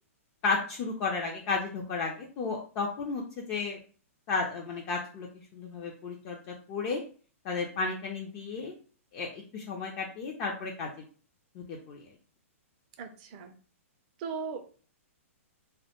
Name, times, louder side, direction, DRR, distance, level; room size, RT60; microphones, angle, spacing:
voice 1, 0.4-3.8 4.3-5.3 5.5-7.0 7.4-8.7 9.1-10.9 11.6-12.1, left 4 dB, 30° left, 0 dB, 0.4 m, -33 dB
voice 2, 13.0-13.5 14.2-14.6, right 5 dB, 35° right, 6 dB, 0.4 m, -37 dB
2.1 x 2.1 x 2.8 m, 0.40 s
hypercardioid pair, 145°, 8 cm